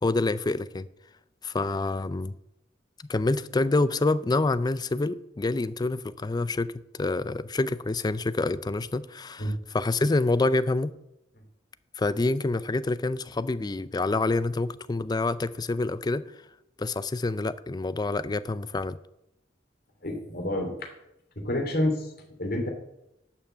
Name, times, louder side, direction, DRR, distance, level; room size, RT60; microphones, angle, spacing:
voice 1, 0.0-0.9 1.4-2.3 3.1-6.7 7.0-10.9 12.0-16.3 16.8-19.0, left 2 dB, 20° left, 0.4 m, -27 dB
voice 2, 20.0-20.7 21.4-22.1 22.4-22.7, left 1 dB, 55° left, 2.7 m, -28 dB
11.5 x 5.7 x 7.8 m
head